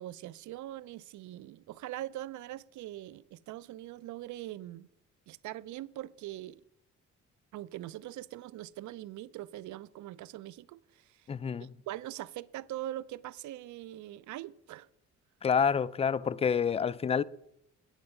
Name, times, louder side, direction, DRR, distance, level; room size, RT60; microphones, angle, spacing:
voice 1, 0.0-4.9 5.3-6.6 7.5-11.3 11.6-14.9, right 14 dB, 75° right, 0.5 m, -42 dB
voice 2, 11.3-11.7 15.4-17.2, left 6 dB, 20° left, 0.3 m, -28 dB
9.4 x 9.0 x 5.3 m
cardioid pair, 90°, 30 cm